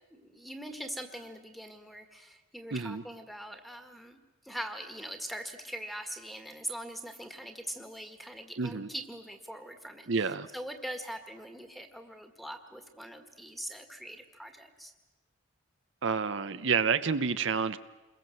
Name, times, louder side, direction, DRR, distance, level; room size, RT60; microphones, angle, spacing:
voice 1, 0.1-4.2 4.4-14.9, equal, ahead, 6 dB, 1.8 m, -42 dB
voice 2, 2.7-3.0 8.6-8.9 10.1-10.5 16.0-17.8, right 5 dB, 60° right, 11 dB, 0.7 m, -29 dB
28.0 x 22.0 x 7.8 m, 1.1 s
head